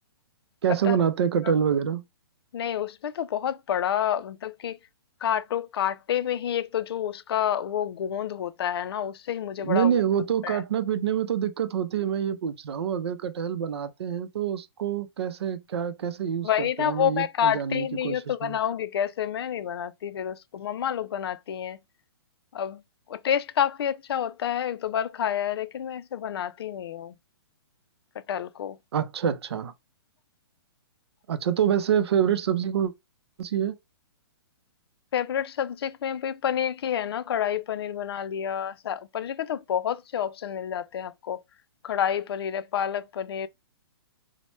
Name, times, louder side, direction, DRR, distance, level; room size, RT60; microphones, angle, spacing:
voice 1, 0.6-2.0 9.6-18.6 28.9-29.7 31.3-32.9 33.4-33.7, right 8 dB, 80° right, 0.5 m, -26 dB
voice 2, 2.5-4.8 5.2-10.0 10.4-10.6 16.4-21.8 22.5-22.8 23.1-27.1 28.3-28.8 35.1-41.4 41.8-43.5, left 9 dB, 70° left, 0.4 m, -29 dB
3.0 x 2.1 x 3.0 m
hypercardioid pair, 155°, 13 cm